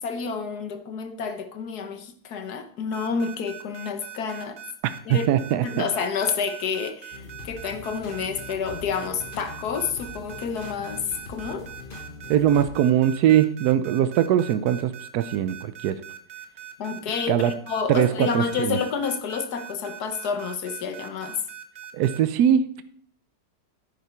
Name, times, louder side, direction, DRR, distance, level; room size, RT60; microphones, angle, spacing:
voice 1, 0.0-4.6 5.1-5.3 5.6-11.7 16.8-21.4, left 6 dB, 70° left, 8 dB, 1.5 m, -29 dB
sound 1, 2.9-22.2, right 11 dB, 45° right, 1.3 m, -41 dB
voice 2, 5.1-5.9 12.3-16.0 17.3-17.5 17.9-18.8 21.9-22.8, right 10 dB, 75° right, 12 dB, 1.1 m, -21 dB
sound 2, 7.1-12.8, left 3 dB, 35° left, 1.3 m, -42 dB
10.5 x 9.2 x 4.4 m, 0.62 s
omnidirectional pair, 1.8 m